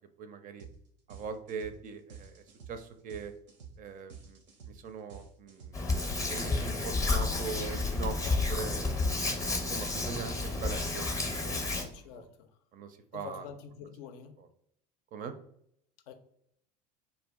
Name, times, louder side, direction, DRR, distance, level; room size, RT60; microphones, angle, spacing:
voice 1, 0.2-0.6 1.1-2.4 2.7-3.3 3.8-4.4 4.7-5.8 6.2-8.2 8.5-8.8 9.3-12.2 12.7-13.5 15.1-15.3, right 5 dB, 40° right, 8 dB, 0.4 m, -41 dB
sound 1, 0.6-0.8 1.1-8.9, right 6 dB, 85° right, 0.6 m, -50 dB
Hands, 5.7-11.8, left 3 dB, 15° left, 0.6 m, -31 dB
voice 2, 11.7-12.5 13.1-14.4 16.1-16.2, left 7 dB, 65° left, 7 dB, 0.5 m, -46 dB
2.3 x 2.2 x 3.5 m, 0.71 s
hypercardioid pair, 75°, 21 cm